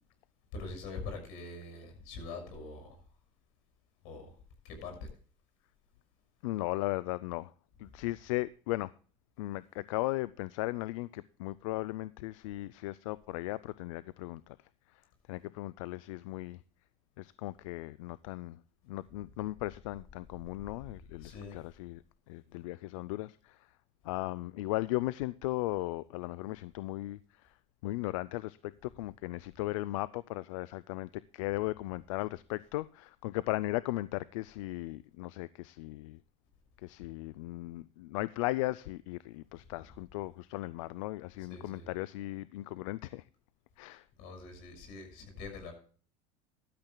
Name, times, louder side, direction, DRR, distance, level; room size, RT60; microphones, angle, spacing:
voice 1, 0.5-3.1 4.0-4.4 4.6-5.1 7.9-8.0 19.3-19.4 21.2-21.6 32.5-32.7 39.6-39.9 41.3-41.9 44.2-45.7, left 3 dB, 70° left, 6.3 m, -44 dB
voice 2, 6.4-7.5 7.8-8.9 9.4-14.6 14.9-15.0 15.3-16.6 17.2-18.6 18.9-23.7 24.0-27.5 27.8-36.2 36.8-43.2 43.8-44.1, left 18 dB, 90° left, 0.4 m, -37 dB
15.5 x 12.0 x 2.2 m
supercardioid pair, 125°, 16 cm